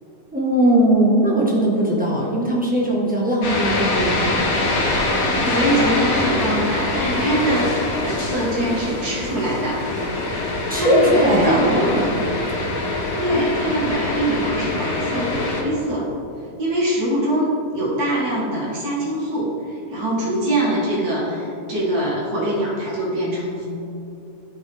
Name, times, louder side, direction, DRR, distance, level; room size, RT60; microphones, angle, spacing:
voice 1, 0.3-4.3 10.7-12.1, right 1 dB, 5° right, -5 dB, 1.2 m, -19 dB
sound 1, 3.4-15.6, left 2 dB, 65° left, 1.5 m, -24 dB
voice 2, 5.2-9.8 10.5-11.9 13.2-16.1 16.6-23.7, right 1 dB, 85° right, -5 dB, 2.2 m, -23 dB
12.0 x 4.8 x 3.5 m, 2.6 s
omnidirectional pair, 1.6 m